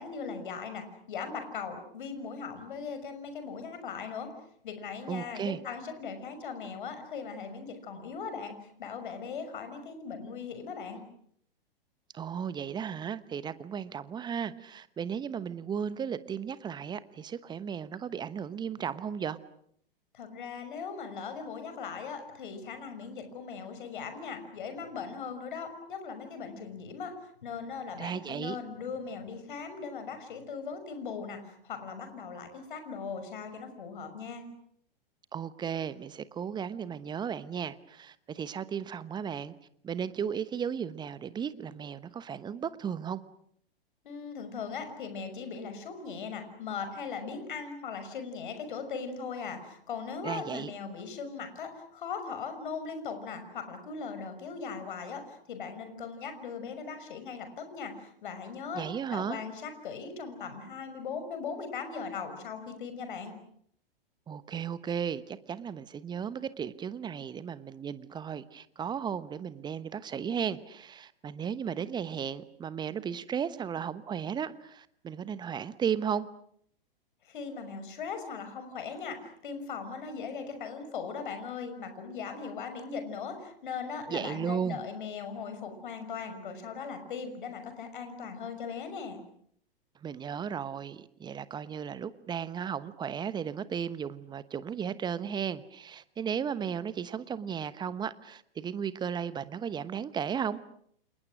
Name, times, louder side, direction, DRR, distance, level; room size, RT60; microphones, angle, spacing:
voice 1, 0.0-4.3 4.6-8.5 8.8-11.0 20.1-27.1 27.4-34.4 44.0-55.2 55.5-57.9 58.2-58.8 59.1-63.3 77.3-89.2, left 5 dB, 55° left, 8 dB, 6.1 m, -39 dB
voice 2, 5.1-5.6 12.1-19.4 28.0-28.6 35.3-39.5 39.8-43.2 50.2-50.7 58.7-59.4 64.3-76.3 84.1-84.8 90.0-100.6, right 7 dB, 15° right, 16 dB, 1.1 m, -35 dB
30.0 x 27.5 x 6.3 m, 0.67 s
figure-of-eight pair, 105°, 29 cm